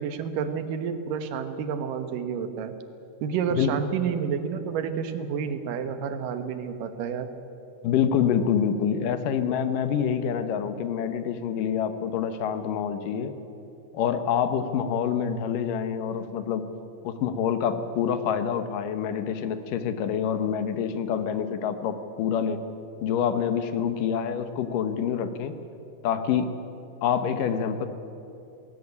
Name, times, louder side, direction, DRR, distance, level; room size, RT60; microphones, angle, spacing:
voice 1, 0.0-2.7 3.2-7.3, right 7 dB, 85° right, 9 dB, 2.9 m, -30 dB
voice 2, 7.8-13.3 13.9-16.6 17.0-22.6 23.0-25.5 26.0-26.5 27.0-27.9, left 8 dB, 80° left, 10 dB, 2.7 m, -26 dB
19.0 x 17.0 x 9.6 m, 2.7 s
omnidirectional pair, 3.8 m